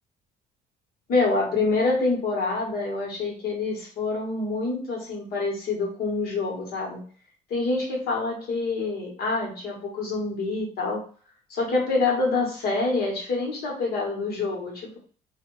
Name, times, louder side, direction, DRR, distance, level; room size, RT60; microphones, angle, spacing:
voice 1, 1.1-7.0 7.5-11.0 11.5-15.0, left 3 dB, 65° left, -1 dB, 1.4 m, -26 dB
2.5 x 2.4 x 3.1 m, 0.41 s
cardioid pair, 110°, 17 cm